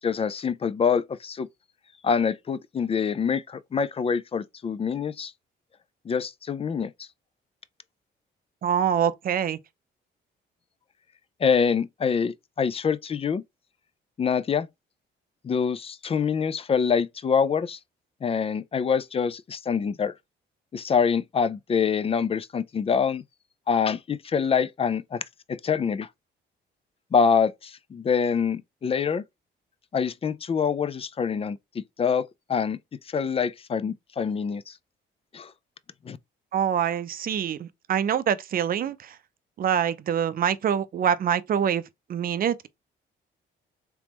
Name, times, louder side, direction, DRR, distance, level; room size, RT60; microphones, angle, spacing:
voice 1, 0.0-1.5 2.0-5.3 6.1-6.9 11.4-13.4 14.2-14.7 15.4-17.8 18.2-20.1 20.7-23.2 23.7-25.2 25.5-26.1 27.1-29.2 29.9-31.6 32.0-32.8 33.1-34.7 35.3-35.5 36.1-36.2, left 6 dB, 30° left, 0.4 m, -25 dB
voice 2, 8.6-9.6 36.5-39.2 39.6-41.8 42.1-42.7, right 8 dB, 45° right, 0.5 m, -25 dB
3.4 x 3.0 x 3.0 m
cardioid pair, 90°, 20 cm